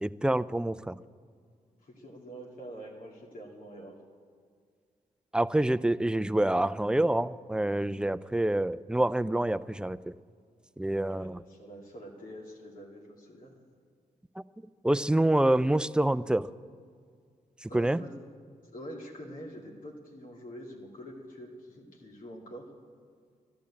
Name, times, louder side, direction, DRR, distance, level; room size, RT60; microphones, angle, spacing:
voice 1, 0.0-1.0 5.3-10.1 10.8-11.4 14.8-16.5 17.6-18.0, right 1 dB, 5° right, 15 dB, 0.4 m, -27 dB
voice 2, 1.8-4.0 11.1-13.5 17.7-18.1 18.7-22.7, equal, 65° left, -1 dB, 2.4 m, -45 dB
12.0 x 10.5 x 8.4 m, 2.1 s
cardioid pair, 60°, 15 cm